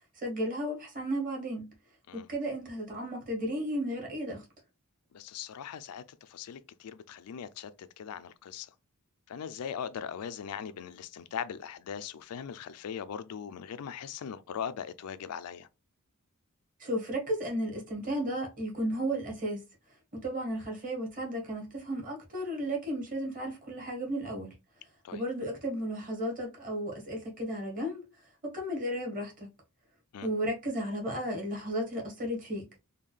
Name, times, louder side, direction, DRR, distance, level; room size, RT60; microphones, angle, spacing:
voice 1, 0.2-1.7 2.1-4.4 16.8-19.6 20.1-24.5 25.1-28.0 28.4-29.5 30.2-32.7, equal, 40° right, 1.5 m, -34 dB
voice 2, 5.1-8.7 9.3-15.7 25.0-25.2 30.1-30.3, left 8 dB, 75° left, 0.4 m, -40 dB
3.6 x 2.3 x 3.2 m
head